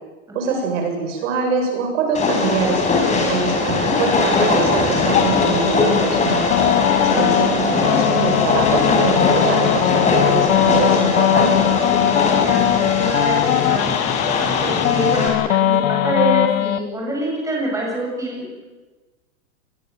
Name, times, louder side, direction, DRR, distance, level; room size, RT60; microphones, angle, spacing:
voice 1, 0.3-2.8 3.3-6.4 7.0-11.7, right 5 dB, 60° right, 4 dB, 7.4 m, -24 dB
Train, 2.1-15.3, left 3 dB, 15° left, 6.0 m, -20 dB
sound 1, 5.1-16.8, left 12 dB, 70° left, 1.4 m, -20 dB
voice 2, 6.8-7.2 12.1-12.7 12.9-13.9 14.6-18.6, equal, 5° right, -2 dB, 7.8 m, -26 dB
24.5 x 21.5 x 7.8 m, 1.2 s
hypercardioid pair, 140°, 42 cm